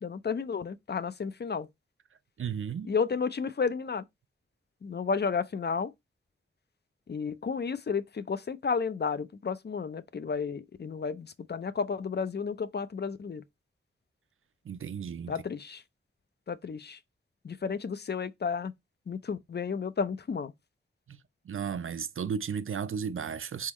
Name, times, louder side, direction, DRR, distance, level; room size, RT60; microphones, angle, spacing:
voice 1, 0.0-1.7 2.8-4.1 4.8-5.9 7.1-13.4 15.3-15.8 16.5-17.0 17.4-18.7 19.1-20.5, left 5 dB, 55° left, 0.5 m, -32 dB
voice 2, 2.4-2.9 14.6-15.3 21.1-21.2 21.4-23.7, right 7 dB, 80° right, 0.4 m, -34 dB
4.2 x 3.7 x 3.0 m
wide cardioid pair, 85°, 21 cm